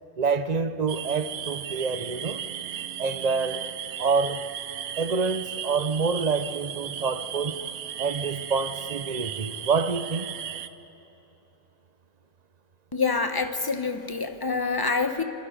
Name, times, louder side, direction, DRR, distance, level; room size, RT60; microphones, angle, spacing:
voice 1, 0.2-2.4 3.0-3.7 4.0-4.5 5.0-7.6 8.0-10.3, right 5 dB, 40° right, 10 dB, 0.6 m, -27 dB
sound 1, 0.9-10.7, right 9 dB, 75° right, 1.2 m, -36 dB
voice 2, 12.9-15.2, left 4 dB, 20° left, 7 dB, 0.9 m, -26 dB
26.5 x 25.0 x 5.2 m, 3.0 s
omnidirectional pair, 1.6 m